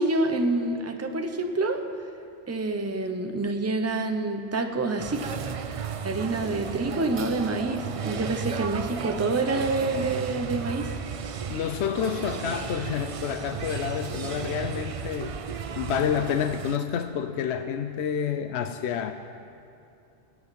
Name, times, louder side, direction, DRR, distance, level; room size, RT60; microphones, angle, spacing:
voice 1, 0.0-1.8 2.5-5.3 6.0-10.9, right 2 dB, 15° right, 6 dB, 0.7 m, -27 dB
sound 1, 5.0-16.8, right 6 dB, 50° right, 0.4 m, -34 dB
voice 2, 11.5-15.4 15.8-19.1, left 8 dB, 70° left, 8 dB, 0.8 m, -29 dB
17.5 x 6.3 x 9.1 m, 2.7 s
omnidirectional pair, 1.2 m